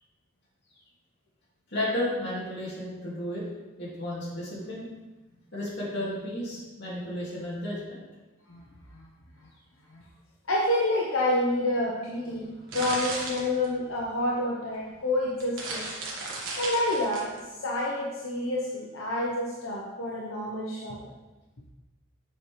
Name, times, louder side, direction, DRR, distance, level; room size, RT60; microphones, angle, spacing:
voice 1, 1.7-3.4 3.8-4.9 5.5-8.0, left 1 dB, 55° left, -6 dB, 2.4 m, -33 dB
voice 2, 10.5-12.5 12.7-15.9 16.6-21.1, left 1 dB, 85° left, -4 dB, 1.0 m, -28 dB
sound 1, 12.3-14.1 14.8-14.9 15.3-17.4, right 2 dB, 70° right, 1.4 m, -35 dB
7.2 x 5.6 x 3.3 m, 1.1 s
head